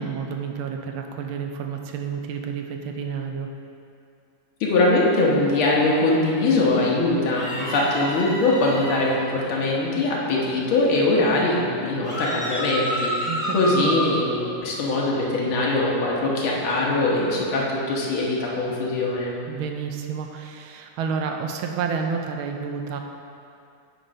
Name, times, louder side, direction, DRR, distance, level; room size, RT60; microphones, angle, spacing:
voice 1, 0.0-3.5 13.3-14.0 19.5-23.0, right 6 dB, 90° right, 4 dB, 1.5 m, -30 dB
voice 2, 4.6-19.4, left 2 dB, 85° left, -4 dB, 2.0 m, -22 dB
sound 1, 7.4-9.2 12.0-14.1, equal, 20° left, 0.9 m, -29 dB
9.2 x 4.5 x 5.2 m, 2.5 s
omnidirectional pair, 2.2 m